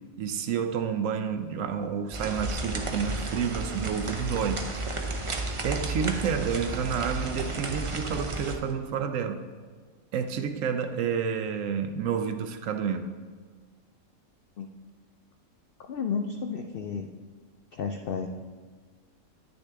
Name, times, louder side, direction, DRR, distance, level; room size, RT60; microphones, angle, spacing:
voice 1, 0.2-4.6 5.6-9.4 10.1-13.1, right 7 dB, 70° right, 8 dB, 0.9 m, -29 dB
sound 1, 2.1-8.6, right 2 dB, 40° right, 0.4 m, -32 dB
voice 2, 15.9-17.1 17.7-18.3, left 6 dB, 75° left, 4 dB, 0.5 m, -32 dB
9.7 x 6.6 x 3.4 m, 1.5 s
omnidirectional pair, 1.5 m